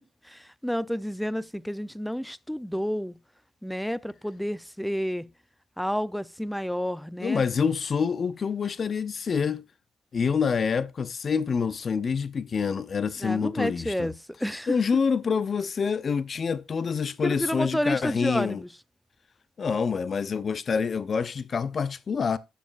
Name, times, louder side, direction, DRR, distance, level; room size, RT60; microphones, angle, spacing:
voice 1, 0.3-3.1 3.6-5.3 5.8-7.4 13.2-14.1 14.4-14.8 17.2-18.7, equal, ahead, 0.7 m, -30 dB
voice 2, 7.2-9.7 10.1-14.1 14.7-18.6 19.6-22.4, left 6 dB, 45° left, 0.7 m, -27 dB
10.0 x 7.2 x 2.6 m
hypercardioid pair, 55°, 0 cm